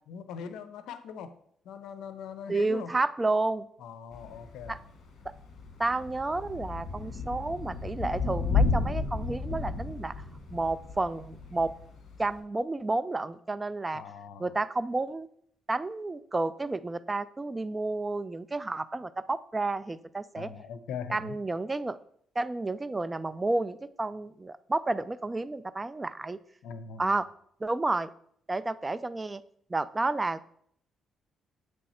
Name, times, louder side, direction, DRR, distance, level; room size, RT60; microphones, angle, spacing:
voice 1, 0.0-1.3 1.6-2.9 3.8-4.8 13.9-14.5 20.4-21.4 26.6-27.0, left 7 dB, 85° left, 11 dB, 0.5 m, -41 dB
voice 2, 2.5-3.7 4.7-4.8 5.8-10.1 10.5-11.7 12.2-14.0 14.4-15.3 15.7-20.5 21.1-22.0 22.4-26.4 27.0-27.3 27.6-28.1 28.5-29.4 29.7-30.5, right 2 dB, 20° right, 15 dB, 0.3 m, -31 dB
Thunder / Rain, 4.1-12.4, left 4 dB, 60° left, 1.4 m, -33 dB
7.5 x 3.2 x 4.2 m, 0.66 s
cardioid pair, 90°, 0 cm